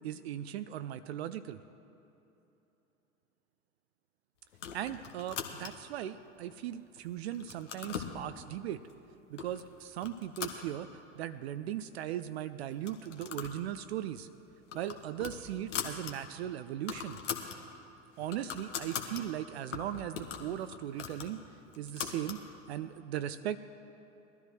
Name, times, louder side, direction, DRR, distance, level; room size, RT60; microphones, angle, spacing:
voice 1, 0.0-1.6 4.7-8.8 9.3-10.9 11.1-14.3 14.7-17.2 18.2-21.4 21.8-22.4 22.7-23.6, right 11 dB, 55° right, 13 dB, 0.5 m, -38 dB
sound 1, 4.5-6.0 6.5-7.0 7.3-8.2 8.9-9.0 9.4-9.6 10.0-11.2 11.6-11.7 11.9-12.0 12.7-13.6 13.9-14.1 14.5-16.1 16.5-16.6 16.8-17.6 18.0-19.2 19.7-22.4, left 7 dB, 65° left, 1.3 m, -41 dB
20.0 x 13.0 x 3.1 m, 3.0 s
figure-of-eight pair, 80°, 40 cm